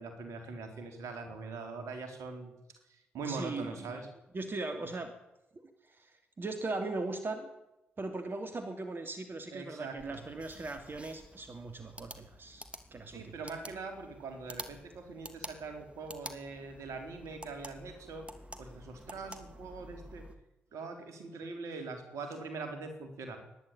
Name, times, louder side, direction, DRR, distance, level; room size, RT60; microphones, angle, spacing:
voice 1, 0.0-2.5 2.9-4.1 9.5-10.2 13.1-18.3 18.6-20.2 20.7-23.4, right 4 dB, 65° right, 6 dB, 4.0 m, -42 dB
voice 2, 3.2-3.9 4.3-5.1 5.8-6.1 6.4-7.5 8.0-12.6 12.9-13.4, right 2 dB, 40° right, 7 dB, 2.8 m, -39 dB
sound 1, 10.0-20.4, right 1 dB, 20° right, 2.9 m, -49 dB
26.0 x 11.0 x 9.0 m, 0.91 s
hypercardioid pair, 40°, 6 cm